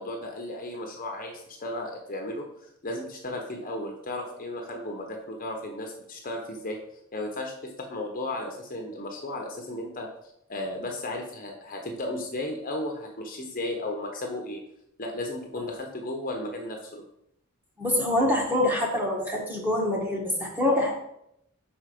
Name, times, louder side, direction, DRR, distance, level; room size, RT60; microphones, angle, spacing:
voice 1, 0.0-2.5 2.8-6.8 7.1-10.1 10.5-14.6 15.0-17.0, left 1 dB, 40° left, 2 dB, 1.0 m, -34 dB
voice 2, 17.8-20.9, left 1 dB, 10° right, -1 dB, 1.5 m, -25 dB
5.9 x 4.9 x 6.0 m, 0.77 s
head